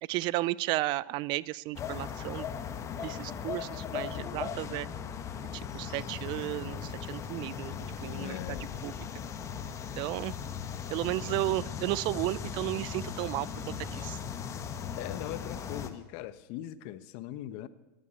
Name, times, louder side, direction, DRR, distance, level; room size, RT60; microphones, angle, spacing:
voice 1, 0.0-2.5 3.0-4.9 5.5-7.8 8.0-8.6 8.8-8.9 10.0-10.3 10.9-14.2, right 18 dB, 45° right, 0.4 m, -33 dB
sound 1, 1.8-15.9, left 7 dB, 30° left, 1.3 m, -38 dB
voice 2, 8.1-8.7 15.0-17.7, left 13 dB, 55° left, 0.9 m, -40 dB
13.5 x 10.0 x 8.6 m
supercardioid pair, 125°, 11 cm